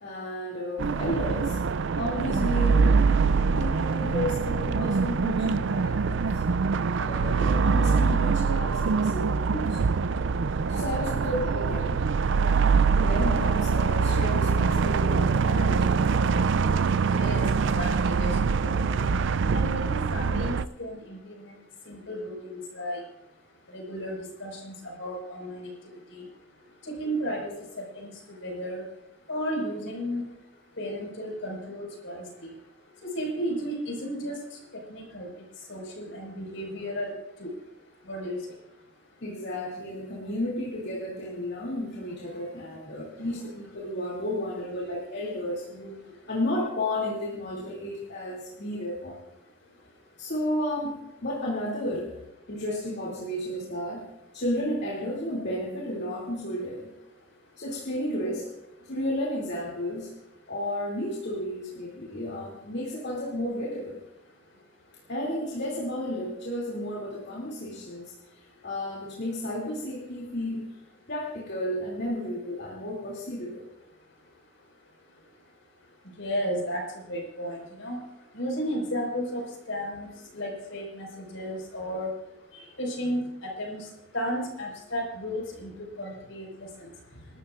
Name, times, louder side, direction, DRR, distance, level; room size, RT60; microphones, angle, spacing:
voice 1, 0.0-1.6 2.0-6.4 7.0-9.8 10.7-12.0 12.4-12.7 13.0-16.3 39.2-46.0 46.3-49.2 50.2-52.1 52.5-54.0 54.3-56.9 57.6-58.6 58.8-60.1 60.5-64.0 65.1-68.1 68.6-70.7 71.1-73.7, left 1 dB, 55° left, -4 dB, 2.8 m, -32 dB
sound 1, 0.8-20.6, right 5 dB, 60° right, 0.4 m, -24 dB
voice 2, 16.9-18.4 18.6-19.1 19.5-21.5 21.9-23.0 23.7-25.7 26.1-26.2 26.9-27.5 27.8-28.1 28.4-28.9 29.3-30.2 30.8-32.5 33.0-34.4 34.9-35.3 35.7-37.1 37.4-37.5 38.1-38.4 76.2-76.8 77.1-78.0 78.3-80.1 80.3-82.1 82.8-83.9 84.1-85.7 86.0-86.9, equal, 70° left, 0 dB, 5.2 m, -33 dB
28.0 x 12.5 x 2.5 m, 0.90 s
head